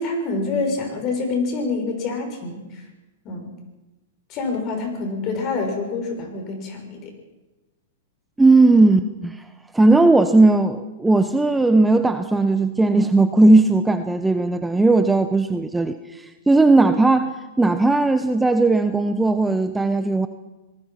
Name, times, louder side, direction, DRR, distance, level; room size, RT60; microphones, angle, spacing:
voice 1, 0.0-2.8 3.2-3.5 4.3-7.1, left 3 dB, 40° left, 4 dB, 6.7 m, -26 dB
voice 2, 8.4-9.4 9.7-20.3, right 2 dB, 5° right, 9 dB, 1.0 m, -17 dB
26.5 x 19.5 x 5.9 m, 1.1 s
hypercardioid pair, 120°, 0 cm